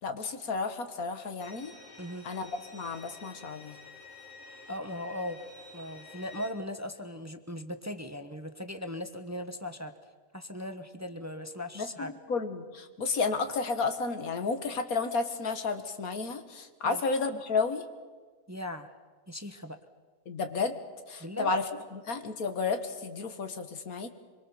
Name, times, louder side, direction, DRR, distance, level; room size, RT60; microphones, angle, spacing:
voice 1, 0.0-1.7 2.2-3.8 11.8-17.9 20.3-20.8 21.1-21.7 21.9-24.1, left 4 dB, 85° left, 8 dB, 2.0 m, -32 dB
Bowed string instrument, 1.4-6.5, left 3 dB, 70° left, 2.8 m, -50 dB
voice 2, 4.7-5.4 5.7-9.9 10.3-12.1 16.8-17.0 18.5-18.9 19.3-19.8 21.2-21.6, left 1 dB, 15° right, 8 dB, 1.0 m, -38 dB
25.0 x 23.0 x 7.0 m, 1.4 s
omnidirectional pair, 1.5 m